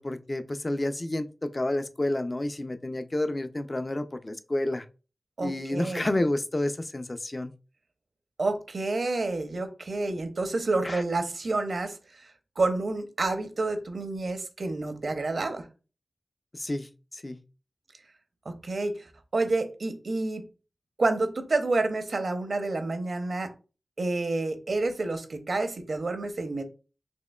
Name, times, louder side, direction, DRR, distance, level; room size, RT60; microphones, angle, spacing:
voice 1, 0.0-4.9 5.4-7.5 10.8-11.0 16.5-17.4, left 1 dB, 35° left, 0.4 m, -30 dB
voice 2, 5.4-6.1 8.4-12.3 12.6-15.7 18.5-20.4 21.0-23.5 24.0-26.6, right 2 dB, 75° right, 0.6 m, -29 dB
4.3 x 2.9 x 2.2 m
cardioid pair, 45°, 0 cm